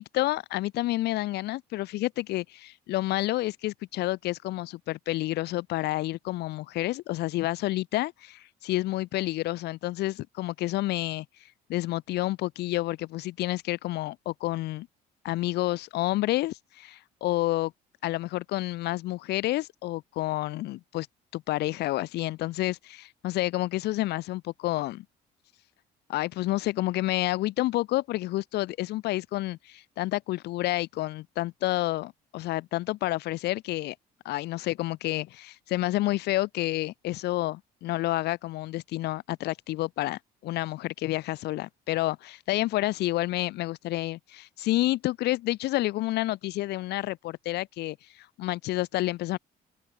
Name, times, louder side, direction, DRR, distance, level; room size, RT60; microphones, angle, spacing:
voice 1, 0.0-11.2 11.7-14.9 15.2-17.7 18.0-21.1 21.3-25.0 26.1-33.9 34.2-49.4, left 17 dB, 80° left, 1.3 m, -29 dB
cardioid pair, 110°, 17 cm